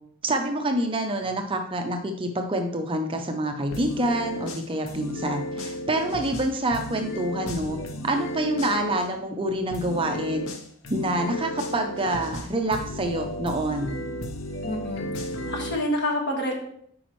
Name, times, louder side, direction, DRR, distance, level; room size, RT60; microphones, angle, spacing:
voice 1, 0.2-7.8 8.0-10.5 10.9-14.0, right 1 dB, 25° right, 4 dB, 0.6 m, -27 dB
sound 1, 3.7-9.1 9.7-15.7, left 1 dB, 70° left, 0.8 m, -34 dB
voice 2, 14.6-15.1 15.5-16.5, left 1 dB, 50° left, -1 dB, 1.6 m, -27 dB
8.4 x 5.1 x 3.1 m, 0.66 s
head